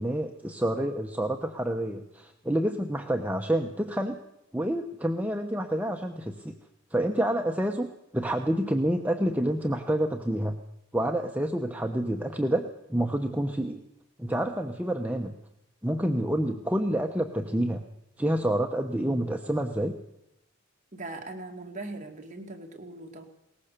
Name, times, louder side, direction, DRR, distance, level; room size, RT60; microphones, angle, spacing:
voice 1, 0.0-4.2 4.5-6.5 6.9-10.6 10.9-13.8 14.2-15.3 15.8-17.8 18.2-20.0, right 1 dB, 10° right, 3 dB, 1.0 m, -28 dB
voice 2, 20.9-23.2, right 2 dB, 40° right, 3 dB, 2.2 m, -40 dB
21.0 x 19.0 x 6.8 m, 0.83 s
head